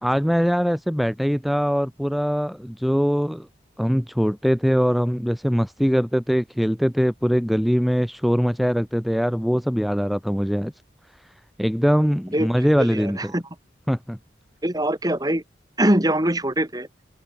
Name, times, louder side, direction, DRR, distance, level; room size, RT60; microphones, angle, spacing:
voice 1, 0.0-3.5 3.8-10.7 11.2-11.3 11.6-13.3 13.9-14.2, equal, ahead, 1.2 m, -22 dB
voice 2, 12.8-13.4 14.6-15.4 15.8-16.9, right 1 dB, 20° right, 3.1 m, -22 dB
head